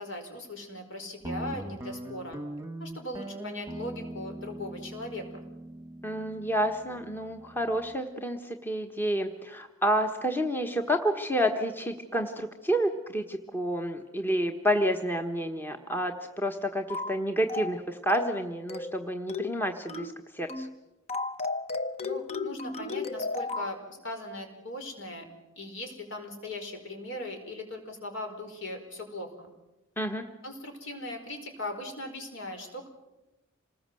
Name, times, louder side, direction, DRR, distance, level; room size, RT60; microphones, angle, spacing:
voice 1, 0.0-2.4 2.8-5.4 22.0-25.2 25.5-29.5 30.4-32.9, left 1 dB, 65° left, 4 dB, 5.0 m, -39 dB
Guitar, 1.2-7.9, right 1 dB, 15° right, 1.3 m, -41 dB
voice 2, 6.0-20.7 30.0-30.2, equal, 10° left, 4 dB, 1.2 m, -29 dB
sound 1, 16.9-17.2 17.5-17.8 18.1-18.4 18.7-19.0 19.3-19.6 19.9-20.2 20.5-20.7 21.1-23.7, left 3 dB, 30° left, 1.0 m, -34 dB
27.0 x 20.0 x 7.8 m, 1.0 s
head